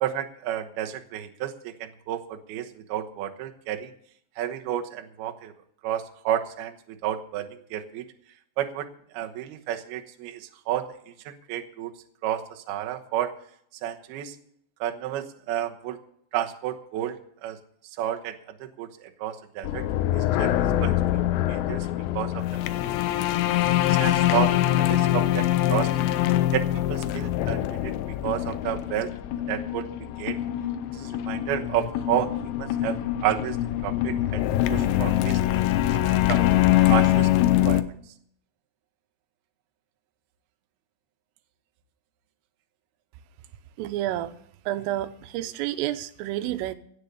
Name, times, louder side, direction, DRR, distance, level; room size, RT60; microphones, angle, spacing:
voice 1, 0.0-3.9 4.4-5.5 5.8-8.0 8.6-8.9 9.1-10.9 11.3-11.9 12.2-13.3 13.8-14.4 14.8-16.0 16.3-17.2 17.4-17.6 18.0-19.8 20.1-21.9 22.1-22.5 22.8-23.3 23.9-25.9 26.5-27.9 28.2-29.1 29.5-29.9 30.2-30.4 30.9-33.6 33.8-34.4 34.7-35.4 35.9-36.5 36.9-37.3 37.6-37.9, right 11 dB, 70° right, 5 dB, 2.6 m, -31 dB
sound 1, 19.6-37.8, left 13 dB, 80° left, 2.6 m, -24 dB
voice 2, 43.8-44.4 44.7-46.8, right 14 dB, 85° right, 11 dB, 3.5 m, -29 dB
16.5 x 8.0 x 6.9 m, 0.65 s
omnidirectional pair, 5.7 m